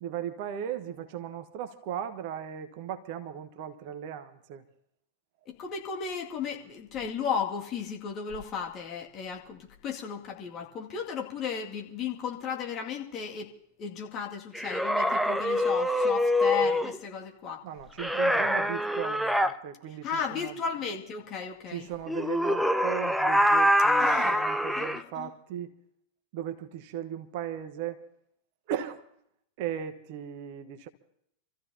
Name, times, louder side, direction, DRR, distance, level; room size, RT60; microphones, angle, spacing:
voice 1, 0.0-4.6 17.6-20.5 21.7-25.7 26.3-28.0 28.7-29.0 29.6-30.9, right 9 dB, 50° right, 1.2 m, -37 dB
voice 2, 5.5-13.5 13.8-17.6 20.0-21.9 24.0-24.4 24.8-25.3, left 6 dB, 35° left, 2.2 m, -35 dB
sound 1, 14.5-17.0 18.0-19.5 22.1-25.0, equal, ahead, 0.7 m, -25 dB
28.0 x 14.5 x 2.8 m
figure-of-eight pair, 90°, 0 cm